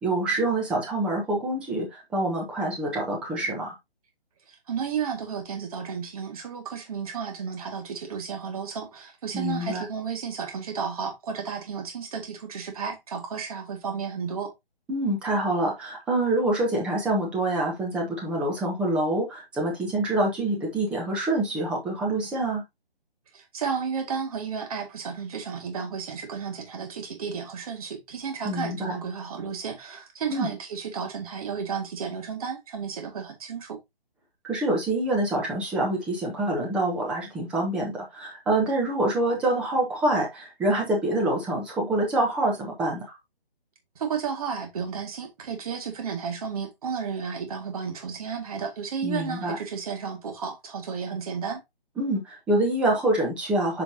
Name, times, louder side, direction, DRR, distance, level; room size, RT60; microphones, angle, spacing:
voice 1, 0.0-3.7 9.3-9.8 14.9-22.6 28.4-28.9 30.3-30.5 34.4-43.0 49.0-49.6 52.0-53.8, right 1 dB, 5° right, 0.8 m, -26 dB
voice 2, 4.5-14.5 23.3-33.8 44.0-51.6, right 6 dB, 35° right, 2.1 m, -33 dB
7.9 x 5.1 x 2.8 m
hypercardioid pair, 160°, 30 cm